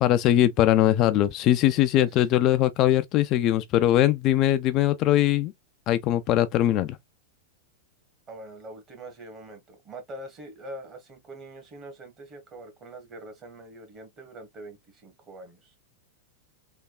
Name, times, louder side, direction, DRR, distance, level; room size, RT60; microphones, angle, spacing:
voice 1, 0.0-5.5 5.9-7.0, left 13 dB, 40° left, 0.3 m, -21 dB
voice 2, 8.3-15.7, right 1 dB, 30° right, 1.3 m, -43 dB
3.4 x 2.3 x 2.2 m
hypercardioid pair, 100°, 0 cm